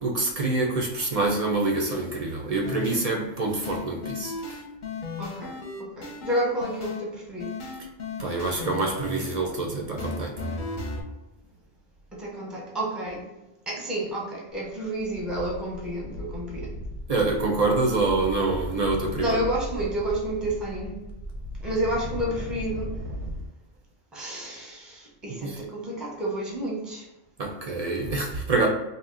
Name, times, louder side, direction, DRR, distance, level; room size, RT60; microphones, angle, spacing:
voice 1, 0.0-4.6 8.2-10.5 17.1-19.4 25.3-25.6 27.4-28.7, right 3 dB, 60° right, 0.4 m, -26 dB
sound 1, 2.6-3.0 3.6-7.0 7.4-9.3 10.0-11.0, left 3 dB, 50° left, 0.7 m, -35 dB
voice 2, 5.2-7.5 12.1-13.3 13.7-16.8 19.2-21.0 21.6-22.9 24.1-27.0, right 1 dB, ahead, 0.5 m, -30 dB
sound 2, 14.5-14.7 15.0-23.5, equal, 85° right, 0.9 m, -37 dB
2.8 x 2.1 x 3.7 m
omnidirectional pair, 1.2 m